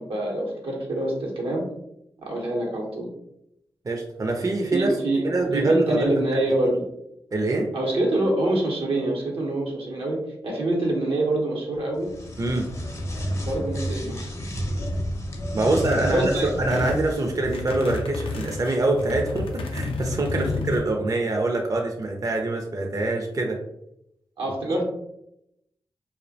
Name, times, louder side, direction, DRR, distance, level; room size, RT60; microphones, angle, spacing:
voice 1, 0.0-1.6 2.2-3.1 4.7-6.8 7.7-10.2 10.4-12.1 13.1-14.3 15.6-15.7 16.1-16.5 20.3-20.7 24.4-24.8, right 1 dB, 80° right, -2 dB, 0.7 m, -25 dB
voice 2, 3.9-4.9 5.2-6.4 6.6-6.7 7.3-7.7 12.4-12.7 15.5-23.6 24.6-24.8, right 2 dB, 40° right, 2 dB, 0.4 m, -25 dB
sound 1, 12.0-17.7, equal, 35° left, 0.5 m, -31 dB
sound 2, 15.8-16.1 16.5-17.1 17.4-20.8, left 3 dB, 90° left, 0.4 m, -30 dB
2.4 x 2.1 x 2.6 m, 0.80 s
cardioid pair, 40°, 9 cm